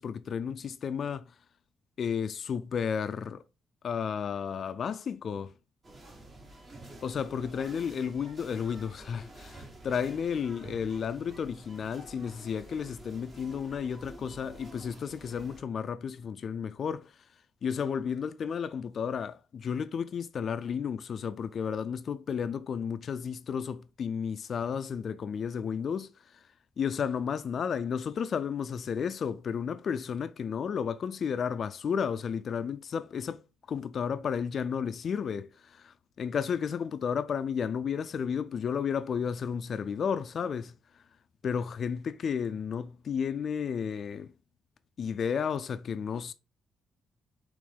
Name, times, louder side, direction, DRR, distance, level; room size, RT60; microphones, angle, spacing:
voice 1, 0.0-1.3 2.0-3.4 3.8-5.5 7.0-17.2 17.6-26.4 26.8-33.4 33.7-41.0 41.4-44.3 45.0-46.3, left 7 dB, 55° left, 0.3 m, -33 dB
sound 1, 5.8-15.6, right 1 dB, 35° right, 1.2 m, -49 dB
5.0 x 3.1 x 3.3 m
cardioid pair, 90°, 0 cm